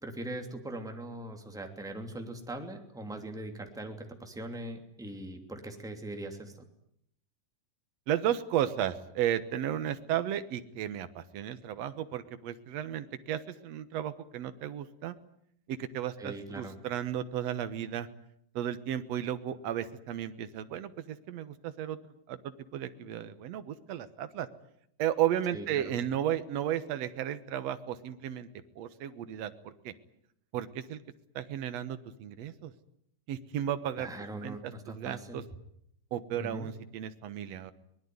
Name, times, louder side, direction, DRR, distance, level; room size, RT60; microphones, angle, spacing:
voice 1, 0.0-6.5 16.2-16.8 25.5-25.9 34.0-35.4 36.3-36.7, right 1 dB, ahead, 4 dB, 2.4 m, -41 dB
voice 2, 8.1-15.1 15.7-18.1 18.6-22.0 22.3-24.5 25.0-28.5 28.8-29.9 30.5-31.0 31.4-32.7 33.3-34.1 34.4-35.4 36.1-37.7, right 10 dB, 60° right, 11 dB, 2.0 m, -34 dB
23.5 x 20.5 x 9.5 m, 0.72 s
omnidirectional pair, 4.0 m